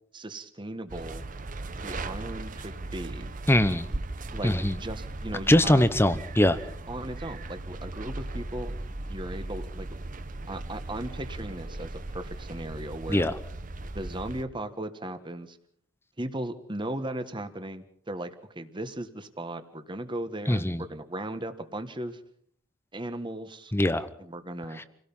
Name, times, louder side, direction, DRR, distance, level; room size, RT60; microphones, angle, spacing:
voice 1, 0.1-1.2 1.8-3.3 4.3-4.5 4.8-5.9 6.9-8.7 9.1-9.9 10.5-13.2 13.9-15.6 16.2-22.2 22.9-23.7 24.2-24.8, right 1 dB, 25° right, 10 dB, 1.4 m, -37 dB
sound 1, 0.9-14.4, right 2 dB, 40° right, 1.0 m, -38 dB
voice 2, 3.5-3.9 4.4-4.8 5.5-6.6 13.1-13.4 20.5-20.8 23.7-24.1 24.8-24.9, left 1 dB, 10° left, 13 dB, 0.9 m, -22 dB
28.0 x 17.5 x 5.5 m, 0.64 s
head